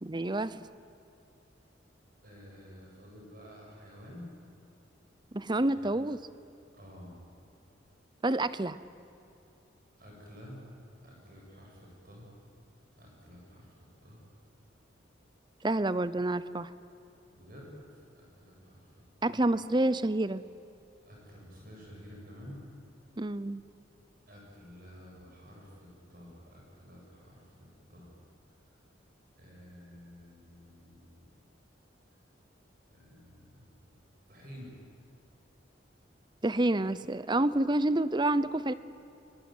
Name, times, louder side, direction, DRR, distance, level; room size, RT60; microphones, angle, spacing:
voice 1, 0.0-0.7 5.3-6.2 8.2-8.8 15.6-16.7 19.2-20.4 23.2-23.6 36.4-38.7, right 2 dB, 25° right, 15 dB, 0.7 m, -28 dB
voice 2, 2.2-4.3 5.6-5.9 6.7-7.2 10.0-10.7 11.0-12.3 13.0-14.2 17.3-19.4 21.0-22.7 24.3-28.2 28.6-28.8 29.4-31.3 32.9-33.9 34.3-34.7, equal, 50° right, -2 dB, 7.9 m, -51 dB
25.0 x 23.5 x 9.3 m, 2.7 s
head